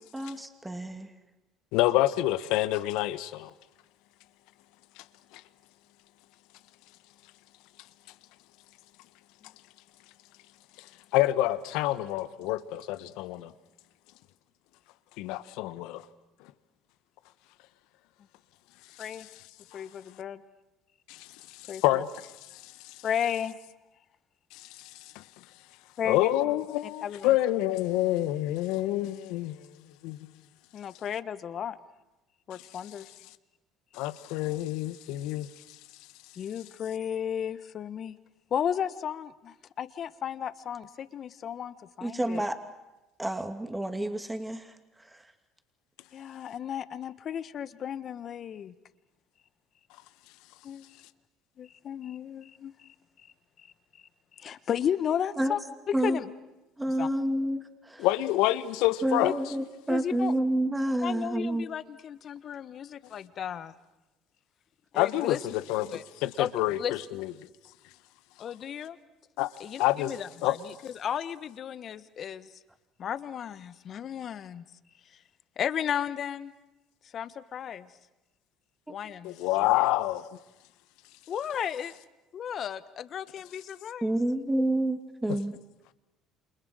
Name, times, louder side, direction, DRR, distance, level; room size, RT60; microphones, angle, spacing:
voice 1, 0.1-1.1 42.0-42.6 43.2-45.3 55.4-55.6 55.9-56.2 56.8-58.1 59.0-61.7 84.0-85.5, right 1 dB, 10° right, 2.8 m, -29 dB
voice 2, 1.7-3.5 5.0-5.1 5.3-5.4 11.1-13.5 15.2-16.0 21.1-21.3 21.5-22.9 24.5-24.9 25.1-25.2 26.0-29.7 30.0-30.2 33.9-35.5 58.0-59.3 65.0-67.3 69.4-69.5 69.8-70.5 79.2-80.2, left 15 dB, 75° left, 1.2 m, -27 dB
voice 3, 19.7-20.4 21.7-22.0 23.0-23.6 26.0-26.3 27.0-27.3 30.7-31.8 32.5-33.1 36.4-38.1 38.5-42.4 46.1-48.7 50.6-50.8 51.6-52.9 53.6-53.7 54.4-55.6 56.0-56.2 57.0-57.1 59.2-59.3 59.9-60.3 61.0-63.7 64.9-65.4 65.9-66.0 66.4-66.5 66.8-66.9 68.4-69.0 69.6-72.5 73.0-74.6 75.6-76.5 77.1-77.9 78.9-79.3 81.3-81.9 82.3-84.1, left 9 dB, 50° left, 1.4 m, -34 dB
28.5 x 28.0 x 6.5 m
hypercardioid pair, 75°, 0 cm